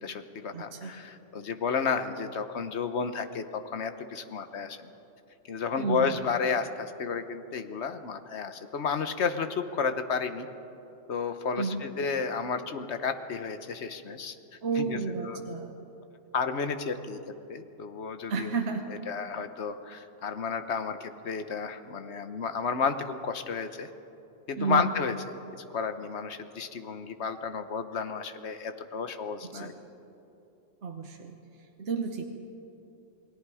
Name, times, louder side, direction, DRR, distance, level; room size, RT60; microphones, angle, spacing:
voice 1, 0.0-4.8 5.5-10.5 11.1-14.4 14.8-15.0 15.2-15.4 16.3-17.2 17.5-18.6 19.1-23.9 24.5-25.1 25.7-29.7, left 5 dB, 60° left, 9 dB, 1.2 m, -32 dB
voice 2, 0.5-0.9 5.8-6.2 11.6-11.8 14.6-15.7 18.3-18.8 24.6-24.9 29.4-29.7 30.8-31.4 31.8-32.2, right 4 dB, 60° right, 3 dB, 1.4 m, -31 dB
29.0 x 20.0 x 4.9 m, 3.0 s
omnidirectional pair, 1.3 m